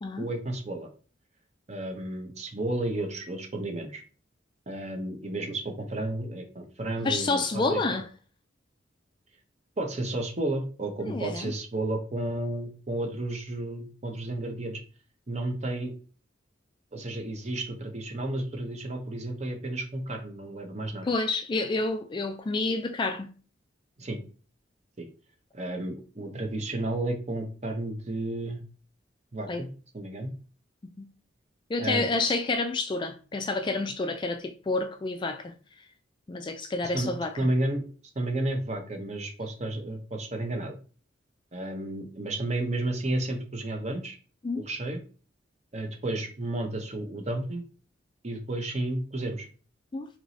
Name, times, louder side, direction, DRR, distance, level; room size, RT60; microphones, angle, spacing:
voice 1, 0.2-0.9 1.7-4.0 4.7-8.0 9.8-14.8 15.3-15.9 16.9-21.1 24.0-24.2 25.0-25.1 25.5-28.6 29.3-29.7 29.9-30.3 31.8-32.1 36.9-37.1 37.4-37.8 38.2-40.7 41.5-44.2 44.6-45.0 45.7-47.6 48.2-49.5, right 1 dB, 35° right, 0.8 m, -32 dB
voice 2, 7.0-8.1 11.1-11.5 21.0-23.3 29.5-29.6 31.0-31.1 31.7-35.5 36.3-37.3 44.4-44.6 49.9-50.1, left 3 dB, 25° left, 0.3 m, -29 dB
4.6 x 2.9 x 2.7 m
head